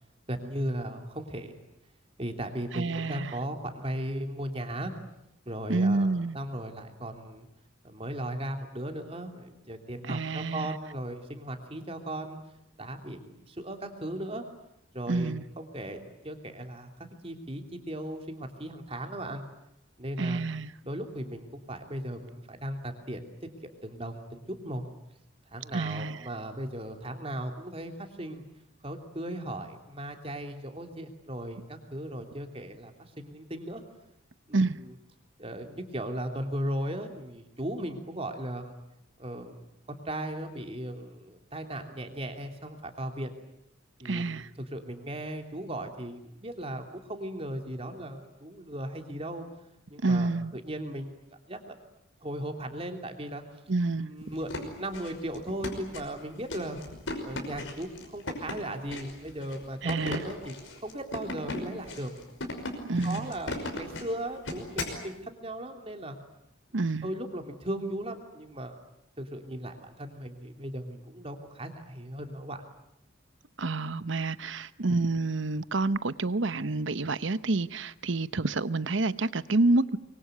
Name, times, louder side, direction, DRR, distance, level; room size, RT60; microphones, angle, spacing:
voice 1, 0.3-1.6 2.2-4.9 5.4-7.5 7.8-12.4 12.8-14.4 14.9-16.9 17.2-19.4 20.0-20.4 20.8-23.2 23.6-24.8 25.5-28.5 28.8-33.8 34.5-34.9 35.4-38.8 39.2-39.6 39.9-43.3 44.0-49.5 49.9-51.1 51.5-51.8 52.2-53.4 54.0-56.8 57.2-60.5 60.8-62.1 63.0-66.2 67.0-68.8 69.2-72.6, right 1 dB, 30° right, 3.0 m, -37 dB
voice 2, 2.7-3.4 5.7-6.4 10.1-10.7 15.1-15.4 20.2-20.7 25.7-26.2 34.5-34.8 44.0-44.5 50.0-50.5 53.7-54.1 59.8-60.3 62.9-63.3 66.7-67.1 73.6-80.0, right 3 dB, 65° right, 0.9 m, -28 dB
sound 1, 54.3-65.0, left 2 dB, 70° left, 5.7 m, -38 dB
24.5 x 23.5 x 9.5 m
head